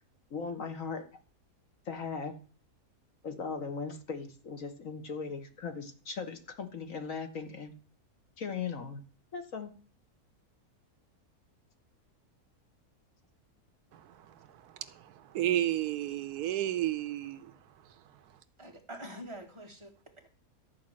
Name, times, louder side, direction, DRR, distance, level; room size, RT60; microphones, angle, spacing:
voice 1, 0.3-1.1 1.8-2.4 3.2-7.7 8.4-9.0 9.3-9.7, left 5 dB, 55° left, 1.6 m, -38 dB
voice 2, 13.9-14.3 14.6-17.5, right 13 dB, 75° right, 1.2 m, -32 dB
voice 3, 18.6-20.3, right 1 dB, 20° right, 1.8 m, -46 dB
13.0 x 4.7 x 7.4 m
omnidirectional pair, 1.7 m